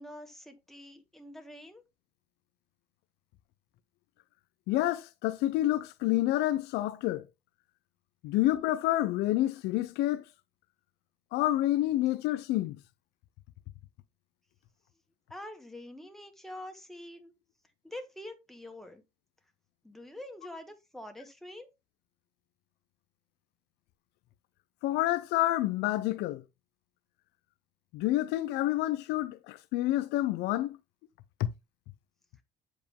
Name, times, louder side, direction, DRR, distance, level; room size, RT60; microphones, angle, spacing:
voice 1, 0.0-1.8 15.3-17.3 17.8-19.0 19.8-21.7, left 1 dB, ahead, 1.7 m, -45 dB
voice 2, 4.7-7.2 8.2-10.2 11.3-12.8 24.8-26.4 27.9-30.8 31.4-31.5, left 15 dB, 90° left, 0.6 m, -28 dB
7.9 x 5.0 x 3.6 m
cardioid pair, 110°, 17 cm